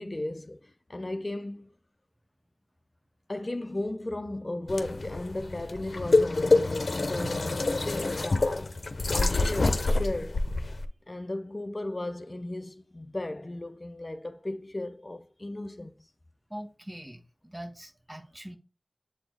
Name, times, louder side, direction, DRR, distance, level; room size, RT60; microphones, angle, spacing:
voice 1, 0.0-1.7 3.3-10.4 11.1-16.0, left 1 dB, 45° left, 0.5 m, -36 dB
sound 1, 4.7-10.8, left 2 dB, 90° left, 0.6 m, -26 dB
Drum, 7.2-9.6, right 2 dB, 70° right, 0.6 m, -49 dB
voice 2, 16.5-18.6, right 1 dB, 30° right, 1.1 m, -42 dB
7.7 x 4.1 x 3.2 m
wide cardioid pair, 50°, 0 cm